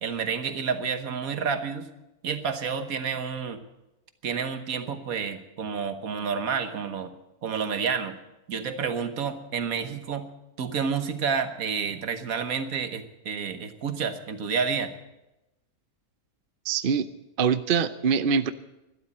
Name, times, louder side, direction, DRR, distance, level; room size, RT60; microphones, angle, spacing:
voice 1, 0.0-1.9 2.2-3.6 4.2-7.1 7.4-8.2 8.5-10.3 10.6-14.9, right 6 dB, 70° right, 9 dB, 1.6 m, -29 dB
voice 2, 16.6-17.1 17.4-18.5, right 6 dB, 50° right, 12 dB, 0.7 m, -23 dB
12.5 x 12.0 x 8.6 m, 0.95 s
omnidirectional pair, 1.6 m